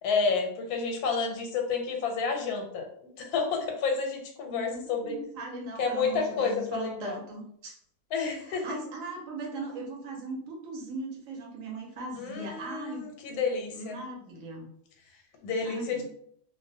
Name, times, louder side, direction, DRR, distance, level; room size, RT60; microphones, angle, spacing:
voice 1, 0.0-2.9 3.2-5.2 5.8-7.2 8.1-8.6 12.2-14.0 15.4-16.0, left 5 dB, 85° left, 3 dB, 1.1 m, -30 dB
voice 2, 4.4-7.7 8.3-13.1 13.7-14.7 15.6-16.0, right 3 dB, 70° right, 0 dB, 0.9 m, -39 dB
2.5 x 2.0 x 2.6 m, 0.67 s
omnidirectional pair, 1.6 m